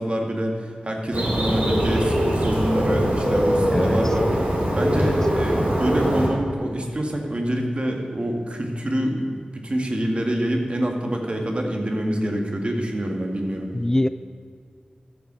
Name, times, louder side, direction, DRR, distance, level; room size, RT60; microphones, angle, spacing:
voice 1, 0.0-4.5 4.8-13.7, right 1 dB, 40° right, 2 dB, 2.1 m, -26 dB
Bird, 1.1-6.3, equal, 65° right, 3.3 m, -22 dB
voice 2, 13.7-14.1, left 1 dB, 15° left, 12 dB, 0.3 m, -23 dB
13.5 x 7.1 x 6.3 m, 2.2 s
cardioid pair, 50°, 3 cm